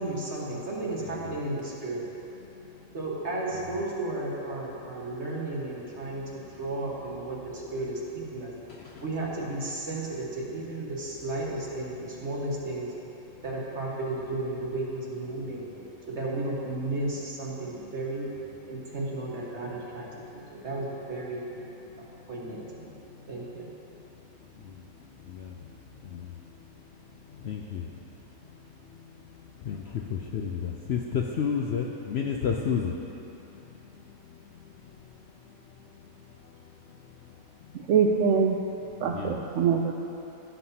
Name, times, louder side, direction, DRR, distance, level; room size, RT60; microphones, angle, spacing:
voice 1, 0.0-2.1 2.9-8.5 9.0-12.9 13.4-15.7 16.1-18.3 18.7-21.5 22.3-22.8 23.3-23.7, right 2 dB, 50° right, -4 dB, 1.8 m, -33 dB
voice 2, 1.0-1.4 2.4-3.0 3.5-3.8 4.8-5.5 6.0-6.6 7.2-7.6 8.7-9.1 11.8-11.9 13.3-13.4 15.3-16.1 17.5-19.0 19.6-20.7 21.6-22.4 22.7-37.9 38.5-39.7, left 7 dB, 65° left, 0 dB, 0.7 m, -37 dB
voice 3, 37.9-38.6 39.0-39.9, right 6 dB, 70° right, 1 dB, 0.8 m, -23 dB
16.0 x 7.6 x 2.8 m, 2.9 s
omnidirectional pair, 1.5 m